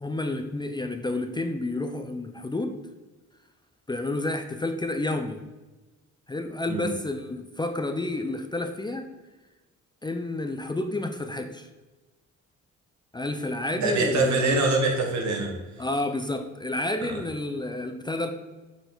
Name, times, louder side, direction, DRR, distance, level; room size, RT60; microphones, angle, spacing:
voice 1, 0.0-2.7 3.9-5.4 6.3-9.1 10.0-11.7 13.1-14.5 15.8-18.3, left 2 dB, 15° left, 7 dB, 0.5 m, -30 dB
voice 2, 13.8-15.6 17.0-17.2, right 2 dB, 70° right, 2 dB, 1.6 m, -24 dB
6.6 x 4.6 x 3.9 m, 1.2 s
cardioid pair, 90°, 30 cm